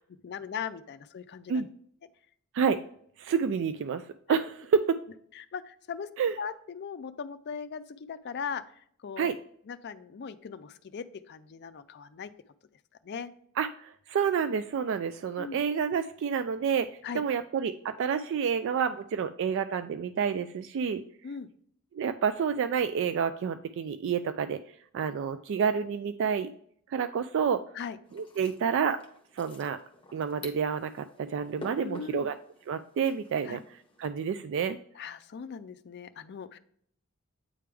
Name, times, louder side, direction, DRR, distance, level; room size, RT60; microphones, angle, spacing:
voice 1, 0.2-1.7 5.4-6.1 6.4-8.6 9.0-9.3 9.7-12.3 13.0-13.3 15.4-15.6 17.0-17.2 21.2-21.5 27.8-28.0 31.8-32.3 33.4-33.6 35.0-36.6, left 6 dB, 50° left, 11 dB, 0.4 m, -39 dB
voice 2, 3.2-4.4 4.8-5.0 6.2-6.4 9.2-9.3 13.6-21.0 21.9-24.6 24.9-26.5 26.9-27.6 28.1-29.0 29.3-29.8 30.1-32.4 32.7-34.8, right 7 dB, 60° right, 11 dB, 0.3 m, -29 dB
sound 1, 28.0-34.1, left 2 dB, 25° left, 1.0 m, -50 dB
8.6 x 3.4 x 3.4 m, 0.64 s
head